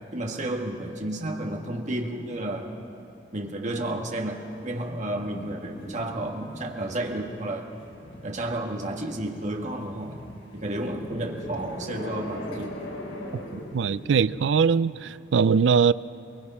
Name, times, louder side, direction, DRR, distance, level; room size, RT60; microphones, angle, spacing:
voice 1, 0.1-2.7 3.3-7.7 8.2-10.2 10.5-12.8, right 1 dB, 40° right, 1.8 m, -31 dB
sound 1, 4.4-14.3, left 1 dB, 85° left, 2.7 m, -41 dB
voice 2, 13.7-15.9, right 6 dB, 75° right, 0.4 m, -21 dB
23.0 x 21.5 x 5.6 m
head